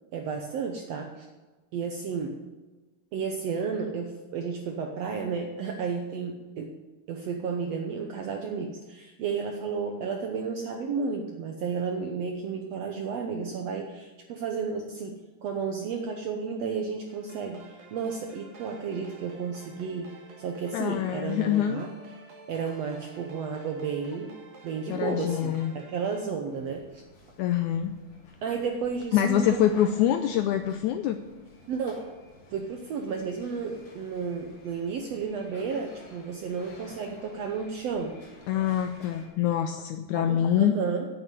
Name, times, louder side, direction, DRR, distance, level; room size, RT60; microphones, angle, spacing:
voice 1, 0.1-1.3 1.7-2.4 3.1-6.7 7.1-21.9 22.5-24.3 24.6-27.0 28.4-29.6 31.7-32.0 32.5-38.2 40.1-41.1, right 5 dB, 75° right, 3 dB, 1.5 m, -32 dB
sound 1, 17.1-26.2, right 3 dB, 55° right, 2.7 m, -50 dB
voice 2, 20.7-21.8 24.9-25.7 27.4-27.9 29.1-31.2 38.5-40.8, left 10 dB, 90° left, 8 dB, 1.7 m, -25 dB
sound 2, 26.5-39.3, left 2 dB, 60° left, 4.1 m, -52 dB
9.1 x 8.6 x 9.5 m, 1.2 s
omnidirectional pair, 4.0 m